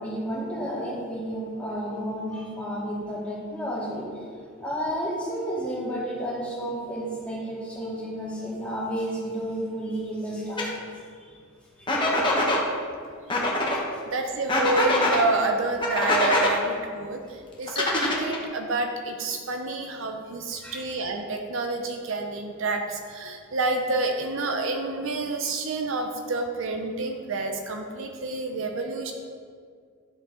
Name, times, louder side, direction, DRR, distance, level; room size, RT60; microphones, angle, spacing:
voice 1, 0.0-4.1 4.6-10.7 11.8-11.9 20.6-20.8, equal, 5° left, -7 dB, 2.0 m, -31 dB
sound 1, 10.6-10.7 11.9-12.6 13.3-13.8 14.5-15.2 15.8-16.5 17.7-18.5, left 1 dB, 20° left, 1.1 m, -23 dB
voice 2, 13.2-29.1, right 3 dB, 60° right, 4 dB, 0.6 m, -29 dB
10.5 x 6.8 x 3.8 m, 2.1 s
head